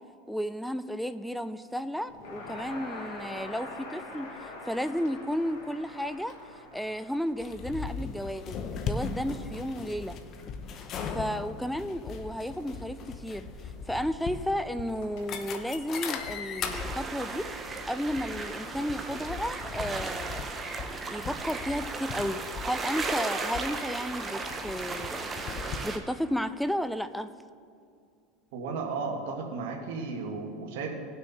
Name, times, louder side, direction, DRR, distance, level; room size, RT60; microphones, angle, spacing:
voice 1, 0.3-6.3 6.7-10.2 10.8-17.5 17.9-20.4 20.9-27.3, equal, ahead, 12 dB, 0.4 m, -33 dB
Crackle, 2.1-17.5, left 2 dB, 70° left, 2.7 m, -47 dB
sound 1, 7.4-25.8, left 5 dB, 40° left, 0.9 m, -39 dB
sound 2, 16.7-26.0, right 4 dB, 20° right, 0.9 m, -36 dB
voice 2, 28.5-30.9, right 4 dB, 75° right, 0 dB, 1.5 m, -34 dB
18.0 x 6.4 x 4.1 m, 2.3 s
supercardioid pair, 135°, 0 cm